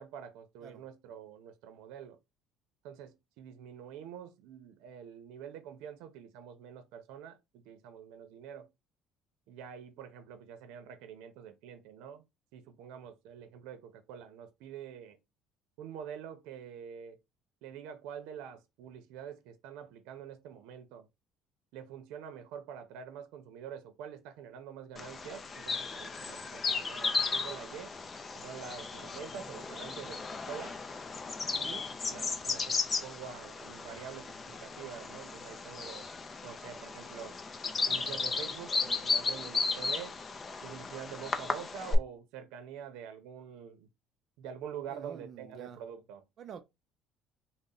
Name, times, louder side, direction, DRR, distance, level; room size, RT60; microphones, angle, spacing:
voice 1, 0.0-2.2 2.8-8.7 9.5-12.2 12.5-15.2 15.8-17.2 17.6-21.1 21.7-27.9 28.3-30.8 31.5-36.1 36.4-37.4 37.9-40.2 40.6-43.9 44.4-46.2, right 8 dB, 80° right, 0.7 m, -46 dB
Bird vocalization bird call bird song, 25.0-42.0, left 4 dB, 20° left, 0.4 m, -35 dB
voice 2, 44.9-45.8 46.4-46.6, right 7 dB, 40° right, 0.5 m, -48 dB
4.0 x 2.1 x 3.8 m
cardioid pair, 175°, 0 cm